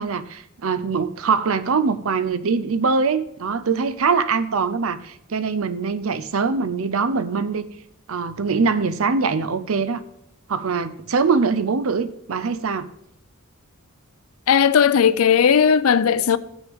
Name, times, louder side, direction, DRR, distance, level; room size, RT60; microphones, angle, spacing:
voice 1, 0.0-7.7 8.1-10.0 10.5-12.9, right 5 dB, 70° right, 0.6 m, -23 dB
voice 2, 14.5-16.4, left 7 dB, 70° left, 0.4 m, -16 dB
14.0 x 6.2 x 3.6 m
head